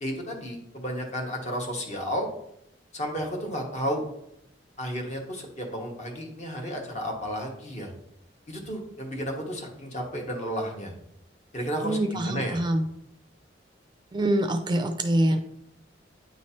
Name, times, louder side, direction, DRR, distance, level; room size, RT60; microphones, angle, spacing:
voice 1, 0.0-2.3 2.9-4.0 4.8-7.9 8.5-10.9 11.5-12.6, equal, 40° left, 1 dB, 1.3 m, -32 dB
voice 2, 11.8-12.9 14.1-15.4, right 1 dB, 25° right, 6 dB, 0.4 m, -25 dB
9.1 x 3.2 x 4.2 m, 0.75 s
head